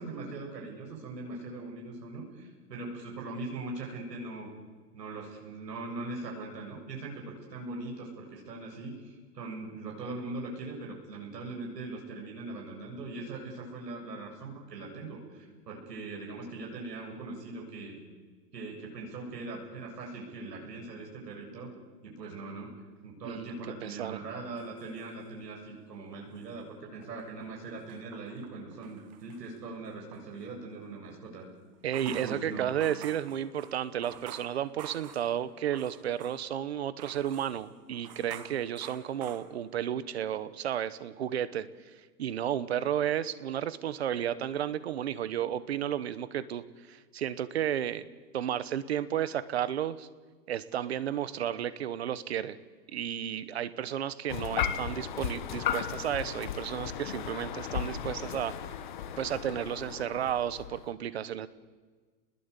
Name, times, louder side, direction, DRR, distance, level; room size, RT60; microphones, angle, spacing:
voice 1, 0.0-4.5 4.9-18.0 18.5-21.7 22.0-22.7 23.0-31.5 32.0-32.7, right 3 dB, 80° right, 0 dB, 7.7 m, -41 dB
voice 2, 23.8-24.2 31.8-41.7 42.2-48.1 48.3-50.1 50.5-52.6 52.9-58.6 59.2-61.5, right 10 dB, 40° right, 16 dB, 1.1 m, -32 dB
sound 1, 24.6-25.8 26.1-30.3 31.7-36.6 37.0-39.9, right 9 dB, 25° right, 1.4 m, -50 dB
sound 2, 54.3-60.9, left 9 dB, 30° left, 1.2 m, -35 dB
28.5 x 21.0 x 8.3 m, 1.4 s
hypercardioid pair, 175°, 48 cm